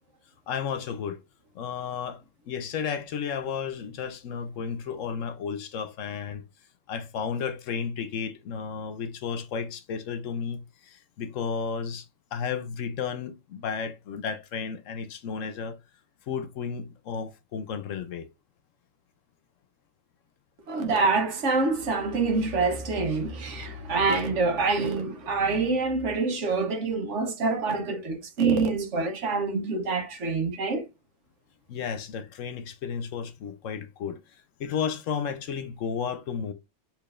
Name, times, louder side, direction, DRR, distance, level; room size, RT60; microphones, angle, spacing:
voice 1, 0.5-1.2 1.5-2.2 2.5-6.4 6.9-12.1 12.3-15.8 16.3-18.3 31.7-34.2 34.6-36.5, left 6 dB, 80° left, 1.0 m, -33 dB
voice 2, 20.7-30.9, right 4 dB, 70° right, 1.3 m, -26 dB
6.6 x 3.2 x 2.5 m
omnidirectional pair, 1.3 m